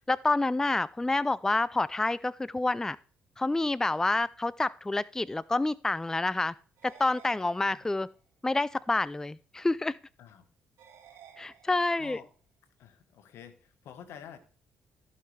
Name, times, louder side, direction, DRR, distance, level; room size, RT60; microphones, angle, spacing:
voice 1, 0.1-3.0 3.4-6.5 6.8-8.1 8.4-10.0 11.4-12.2, left 2 dB, 10° left, 19 dB, 0.3 m, -28 dB
sound 1, 6.8-8.2 10.8-12.2, right 9 dB, 80° right, 1.7 m, -55 dB
voice 2, 7.4-7.8 10.2-10.5 12.0-12.3 12.8-14.4, left 8 dB, 75° left, 10 dB, 1.3 m, -49 dB
14.5 x 5.7 x 3.3 m, 0.39 s
supercardioid pair, 60°, 4 cm